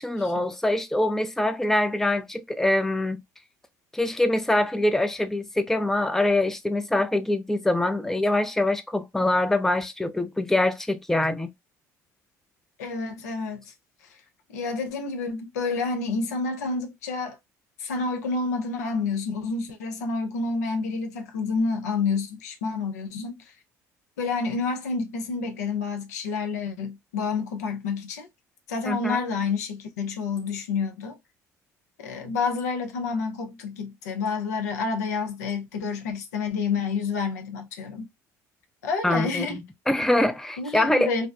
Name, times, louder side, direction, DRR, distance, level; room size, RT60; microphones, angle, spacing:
voice 1, 0.0-3.2 3.9-11.5 28.9-29.2 39.0-41.1, left 1 dB, 5° left, 0.4 m, -24 dB
voice 2, 12.8-13.7 14.1-14.2 14.5-17.4 17.8-23.5 24.2-28.3 28.7-31.2 32.0-38.1 38.8-39.6 40.6-41.3, left 4 dB, 85° left, 0.5 m, -29 dB
2.6 x 2.0 x 2.3 m
hypercardioid pair, 60°, 9 cm